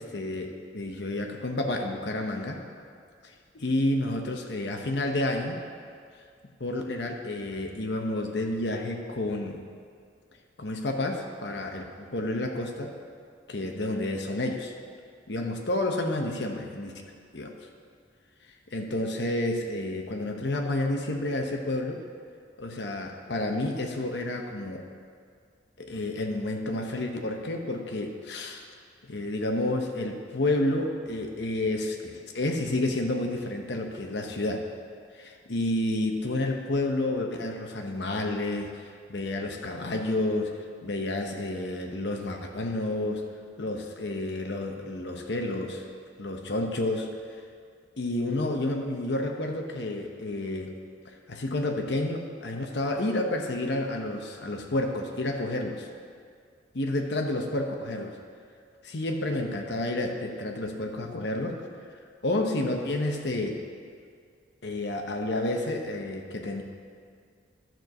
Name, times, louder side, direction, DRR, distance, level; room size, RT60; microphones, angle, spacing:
voice 1, 0.0-2.6 3.2-5.6 6.6-9.6 10.6-12.9 13.5-14.7 15.3-16.9 17.3-17.5 18.7-22.0 22.6-24.8 25.8-28.6 29.1-34.6 35.1-38.7 39.1-40.5 40.8-43.2 43.6-45.8 46.2-47.1 48.0-50.7 51.0-55.9 56.7-58.2 58.8-61.6 62.2-63.6 64.6-66.6, left 1 dB, 70° left, 2 dB, 0.9 m, -30 dB
11.5 x 4.6 x 6.5 m, 2.2 s
head